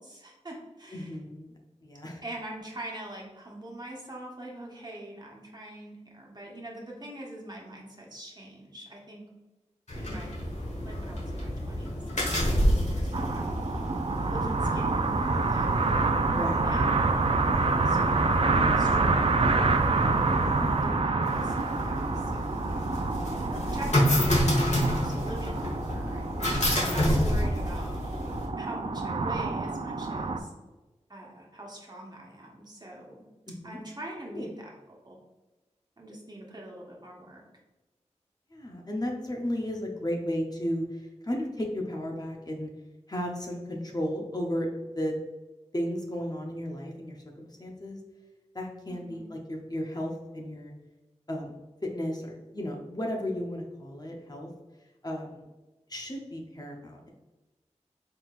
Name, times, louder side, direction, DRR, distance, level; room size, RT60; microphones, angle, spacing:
voice 1, 0.0-1.1 2.2-9.2 9.9-10.4 10.8-13.5 14.3-15.9 16.6-19.4 20.5-23.0 23.4-26.3 26.9-27.9 28.6-30.5 31.1-33.2 33.6-34.7 35.0-35.2 36.0-37.4 48.9-49.3, right 1 dB, 35° right, -2 dB, 1.3 m, -43 dB
voice 2, 0.9-2.2 16.3-16.7 20.4-20.9 23.6-23.7 26.8-27.0 33.5-33.8 34.3-34.5 38.5-42.7 43.1-45.1 45.7-48.0 48.5-50.7 51.3-51.5 51.8-54.5 55.0-55.5 55.9-57.1, equal, 35° left, 0 dB, 0.7 m, -34 dB
sound 1, 9.9-28.5, equal, 70° left, 1.3 m, -30 dB
sound 2, 13.1-30.4, right 3 dB, 50° right, 0.4 m, -27 dB
4.3 x 3.7 x 2.4 m, 1.1 s
cardioid pair, 40°, 12 cm